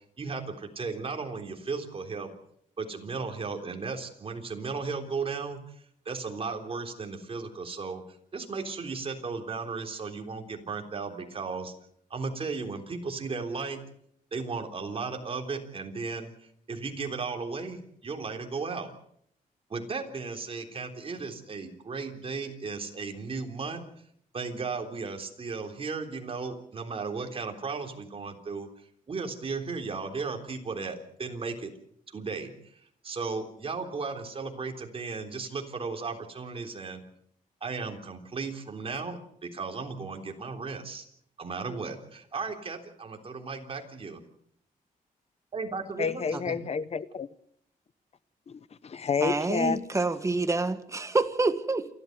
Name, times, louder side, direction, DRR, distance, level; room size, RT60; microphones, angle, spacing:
voice 1, 0.2-2.3 2.8-5.6 6.1-8.0 8.3-11.7 12.1-13.8 14.3-16.3 16.7-18.9 19.7-23.8 24.3-31.7 32.1-37.1 37.6-41.1 41.4-44.2 45.5-46.6, right 4 dB, 40° right, 3.5 m, -35 dB
voice 2, 46.0-47.3 48.5-49.8, left 6 dB, 45° left, 0.9 m, -30 dB
voice 3, 49.2-51.9, right 3 dB, 20° right, 1.7 m, -27 dB
28.5 x 12.5 x 8.0 m
cardioid pair, 120°, 15 cm